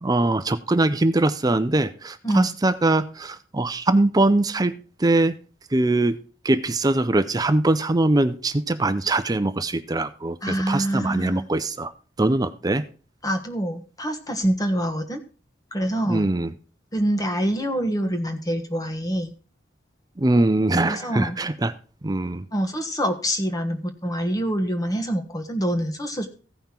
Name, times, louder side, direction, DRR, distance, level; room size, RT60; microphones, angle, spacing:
voice 1, 0.0-5.4 5.7-6.2 6.4-11.9 12.2-12.9 16.1-16.5 20.2-21.7 22.0-22.5, right 2 dB, 20° right, 13 dB, 0.5 m, -22 dB
voice 2, 10.4-11.5 13.2-15.2 15.7-16.3 16.9-19.3 20.8-21.4 22.5-26.3, equal, 20° left, 6 dB, 1.3 m, -25 dB
15.5 x 5.6 x 4.4 m, 0.37 s
head